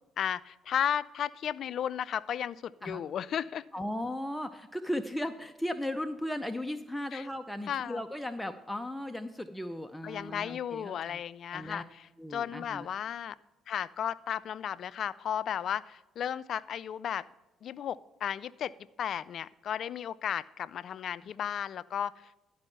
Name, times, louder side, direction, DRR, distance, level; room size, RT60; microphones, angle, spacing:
voice 1, 0.2-3.6 7.1-7.3 7.7-8.0 10.0-12.1 12.3-13.4 13.7-17.3 17.6-22.4, left 9 dB, 60° left, 19 dB, 0.3 m, -34 dB
voice 2, 3.7-11.2 11.5-11.8 12.2-12.9, left 1 dB, 5° left, 7 dB, 0.6 m, -36 dB
11.5 x 5.4 x 5.6 m, 1.0 s
hypercardioid pair, 55°, 0 cm